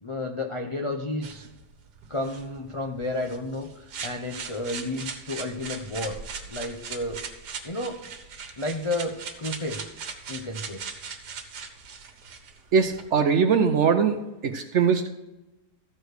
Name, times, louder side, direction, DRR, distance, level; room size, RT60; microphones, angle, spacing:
voice 1, 0.0-1.5 2.1-3.7 4.0-6.2 6.5-7.2 7.6-8.0 8.6-10.0 10.3-10.8, left 2 dB, 50° left, 1 dB, 0.3 m, -31 dB
sound 1, 1.2-13.0, right 5 dB, 80° right, 1.6 m, -39 dB
voice 2, 12.7-14.2 14.4-15.1, right 6 dB, 60° right, 7 dB, 0.8 m, -21 dB
14.5 x 4.9 x 6.5 m, 1.0 s
omnidirectional pair, 1.7 m